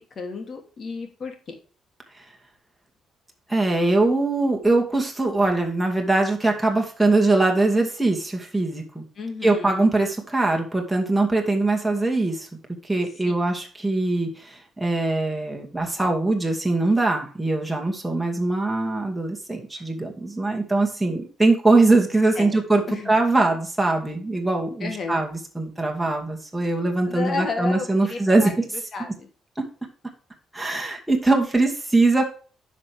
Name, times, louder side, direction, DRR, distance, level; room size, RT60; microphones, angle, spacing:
voice 1, 0.2-1.3 9.2-9.9 19.8-19.9 22.4-22.6 22.9-23.1 24.8-25.2 27.1-28.5 28.9-29.3, left 4 dB, 50° left, 5 dB, 2.7 m, -32 dB
voice 2, 3.5-9.0 9.4-12.5 12.8-28.6 29.6-29.7 30.5-32.2, right 2 dB, 5° right, 1 dB, 2.4 m, -22 dB
9.9 x 6.1 x 3.5 m, 0.39 s
cardioid pair, 90°, 0 cm